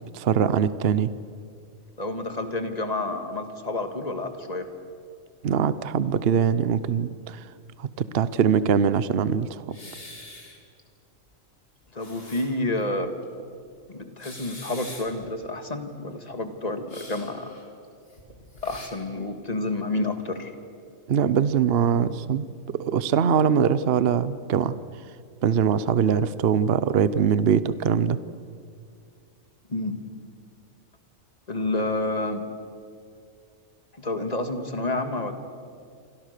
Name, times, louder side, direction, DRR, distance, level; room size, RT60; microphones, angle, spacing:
voice 1, 0.1-1.1 5.4-7.4 7.8-9.8 21.1-24.8 25.4-28.2, right 7 dB, 55° right, 15 dB, 0.9 m, -22 dB
voice 2, 2.0-4.7 11.9-13.1 13.9-17.5 18.6-20.5 29.7-30.0 31.5-32.4 34.0-35.3, left 2 dB, 30° left, 7 dB, 2.0 m, -29 dB
sound 1, 9.7-10.8 11.2-11.3 11.8-12.8 13.2-13.3 14.1-15.3 16.9-18.9, left 2 dB, 45° left, 3.8 m, -44 dB
27.5 x 25.5 x 6.7 m, 2.3 s
omnidirectional pair, 1.4 m